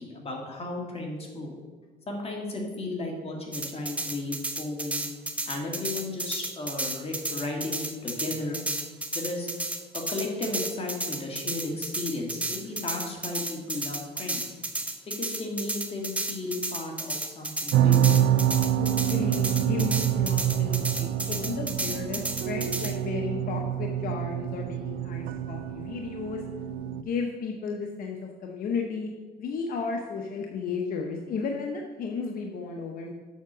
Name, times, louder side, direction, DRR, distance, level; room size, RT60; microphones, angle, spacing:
voice 1, 0.0-1.5 2.1-5.0 5.5-8.6 9.1-9.5 9.9-14.5 15.1-18.0, left 2 dB, 35° left, 1 dB, 1.9 m, -34 dB
sound 1, 3.5-22.9, right 1 dB, 10° right, 0.8 m, -33 dB
sound 2, 17.7-27.0, right 10 dB, 75° right, 0.4 m, -26 dB
voice 2, 18.8-26.4 26.9-29.1 29.4-33.1, left 5 dB, 55° left, 2 dB, 0.9 m, -34 dB
7.4 x 5.9 x 6.0 m, 1.4 s
cardioid pair, 110°, 17 cm